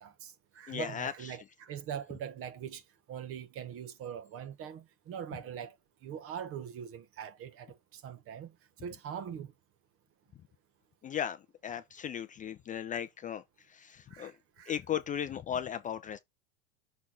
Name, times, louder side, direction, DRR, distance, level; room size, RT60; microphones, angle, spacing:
voice 1, 0.0-2.8 3.1-5.7 6.0-8.5 8.8-9.5 14.1-14.7, right 8 dB, 35° right, 1.2 m, -42 dB
voice 2, 0.7-1.1 11.0-11.4 11.6-13.4 13.7-14.3 14.7-16.2, left 9 dB, 20° left, 0.5 m, -36 dB
6.3 x 4.0 x 3.9 m
supercardioid pair, 120°, 39 cm